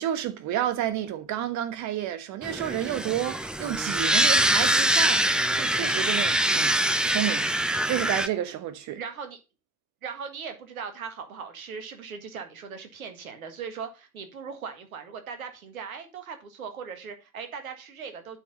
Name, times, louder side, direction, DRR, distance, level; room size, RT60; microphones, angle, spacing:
voice 1, 0.0-6.8 7.0-7.4 7.9-9.0, right 11 dB, 40° right, 1.3 m, -30 dB
sound 1, 2.4-8.3, right 1 dB, ahead, 0.4 m, -24 dB
voice 2, 9.0-9.4 10.0-18.4, right 6 dB, 70° right, 1.7 m, -39 dB
8.8 x 4.8 x 5.3 m
figure-of-eight pair, 70°, 44 cm